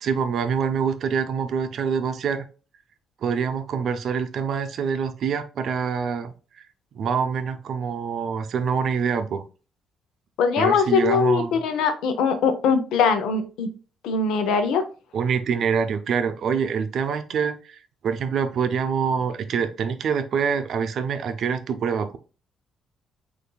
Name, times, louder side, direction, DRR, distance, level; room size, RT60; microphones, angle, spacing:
voice 1, 0.0-2.5 3.2-6.3 6.9-9.4 10.6-11.6 15.1-22.2, right 6 dB, 65° right, 10 dB, 0.6 m, -25 dB
voice 2, 10.4-13.7 14.0-14.8, left 5 dB, 85° left, 8 dB, 0.6 m, -21 dB
6.6 x 2.6 x 2.2 m, 0.35 s
cardioid pair, 90°, 0 cm